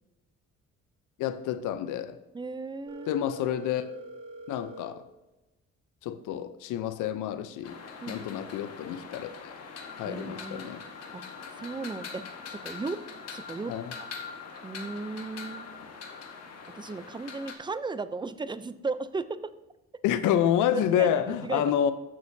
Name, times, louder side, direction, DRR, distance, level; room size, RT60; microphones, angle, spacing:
voice 1, 1.2-2.2 3.1-3.9 4.5-5.0 6.0-7.8 8.1-9.3 10.0-10.8 13.7-13.9 20.0-21.9, left 10 dB, 90° left, 0.7 m, -28 dB
voice 2, 2.3-3.2 8.0-8.3 10.0-10.8 11.1-11.2 11.5-12.2 12.5-13.0 13.3-13.7 14.0-14.1 14.6-15.7 16.7-19.5 20.7-21.6, right 3 dB, 15° right, 0.5 m, -35 dB
Telephone, 2.9-4.9, right 2 dB, 75° right, 1.5 m, -44 dB
sound 1, 7.6-17.6, left 5 dB, 55° left, 1.4 m, -43 dB
13.5 x 6.3 x 2.7 m
cardioid pair, 90°, 30 cm